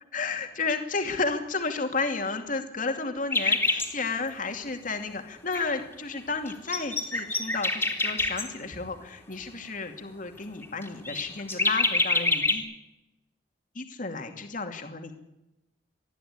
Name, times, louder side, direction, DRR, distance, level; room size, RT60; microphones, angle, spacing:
voice 1, 0.1-12.7 13.7-15.1, left 4 dB, 50° left, 5 dB, 2.5 m, -32 dB
sound 1, 3.3-3.9 5.5-5.6 6.2-6.3 6.5-8.5 10.6-12.6, left 3 dB, 15° left, 3.1 m, -26 dB
21.0 x 13.0 x 9.7 m, 0.90 s
head